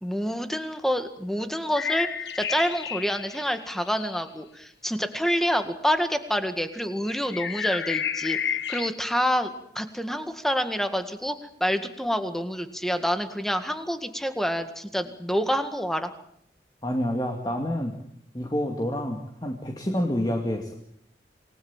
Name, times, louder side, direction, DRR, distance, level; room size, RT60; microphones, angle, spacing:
voice 1, 0.0-2.1 2.3-16.1, equal, ahead, 8 dB, 1.9 m, -27 dB
sound 1, 1.8-4.2 7.1-8.9, left 7 dB, 80° left, 1.4 m, -31 dB
voice 2, 16.8-18.0 18.3-20.8, equal, 25° left, 3 dB, 2.5 m, -28 dB
28.0 x 20.5 x 7.4 m, 0.72 s
head